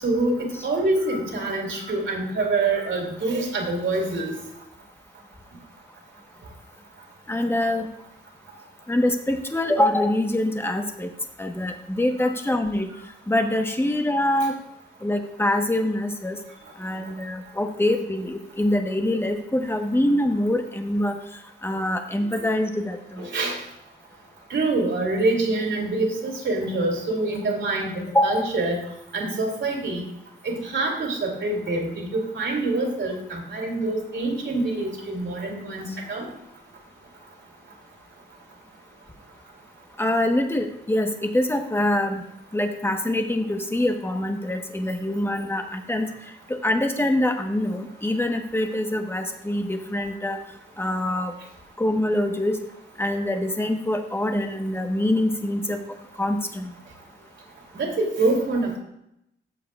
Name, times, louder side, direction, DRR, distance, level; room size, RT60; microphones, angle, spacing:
voice 1, 0.0-4.3 12.2-12.3 22.4-22.5 23.2-23.6 24.5-28.8 29.1-30.0 30.4-36.3 57.7-58.8, right 2 dB, 65° right, -1 dB, 3.0 m, -25 dB
voice 2, 7.3-7.9 8.9-11.1 11.4-12.9 13.3-14.6 15.0-16.4 16.8-21.2 21.6-23.3 28.1-28.5 35.9-36.0 40.0-42.2 42.5-46.1 46.5-50.4 50.8-51.3 51.8-52.6 53.0-55.8 56.2-56.7, left 1 dB, 10° left, 4 dB, 1.1 m, -24 dB
14.0 x 7.4 x 2.4 m, 0.80 s
cardioid pair, 90°, 21 cm